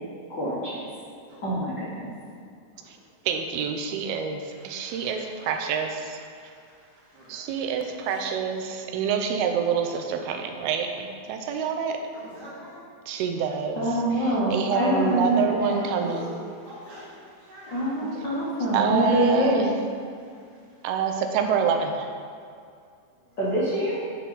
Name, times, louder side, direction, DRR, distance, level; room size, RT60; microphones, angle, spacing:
voice 1, 0.3-0.8 1.4-2.1 13.7-15.8 17.7-19.7 23.4-24.0, right 1 dB, 80° left, -8 dB, 1.0 m, -25 dB
voice 2, 2.7-3.1 4.5-8.2 12.1-12.8 14.5-15.3 15.7-18.8 20.1-20.9 23.1-23.4 23.9-24.0, right 1 dB, 45° right, -8 dB, 2.8 m, -46 dB
voice 3, 3.3-6.2 7.3-12.0 13.1-13.9 14.2-16.3 18.7-19.7 20.8-22.1, right 6 dB, 90° right, 4 dB, 2.6 m, -27 dB
9.3 x 5.7 x 4.0 m, 2.3 s
omnidirectional pair, 4.4 m